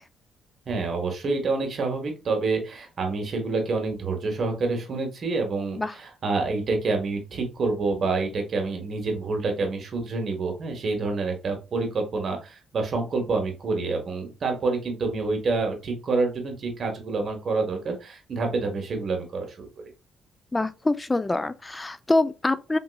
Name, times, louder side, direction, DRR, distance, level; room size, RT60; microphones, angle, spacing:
voice 1, 0.7-19.7, right 3 dB, 50° right, 1.1 m, -27 dB
voice 2, 20.5-22.8, left 2 dB, 15° left, 0.3 m, -25 dB
3.7 x 2.8 x 2.3 m
cardioid pair, 100°, 0 cm